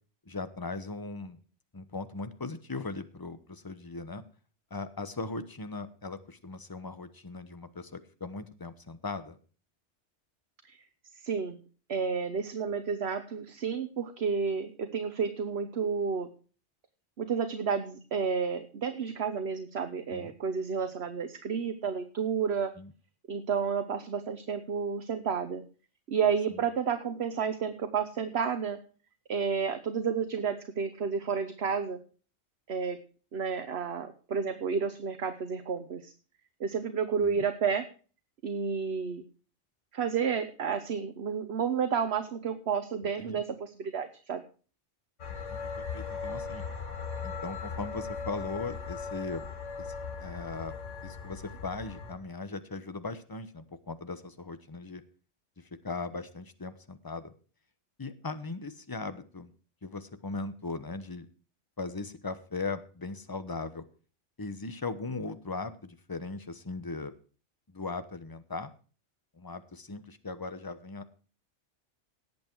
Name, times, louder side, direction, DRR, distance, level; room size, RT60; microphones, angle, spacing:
voice 1, 0.3-1.4 1.7-4.2 4.7-9.4 20.1-20.3 22.8-22.9 26.5-26.6 37.2-37.5 43.2-43.4 45.3-46.6 47.2-49.5 49.8-49.9 50.2-50.8 51.0-55.0 55.8-57.3 58.0-59.5 59.8-61.3 61.8-63.8 64.4-67.1 67.7-68.7 69.3-71.1, left 3 dB, 20° left, 11 dB, 1.0 m, -39 dB
voice 2, 11.1-11.6 11.9-16.3 17.2-22.7 23.3-25.6 26.1-28.8 29.3-32.0 32.7-33.0 33.3-36.1 36.6-37.9 38.4-39.2 39.9-44.4, right 6 dB, 60° right, 9 dB, 1.3 m, -31 dB
sound 1, 45.2-52.1, left 5 dB, 90° left, 2.1 m, -38 dB
18.0 x 8.3 x 4.6 m, 0.38 s
omnidirectional pair, 1.2 m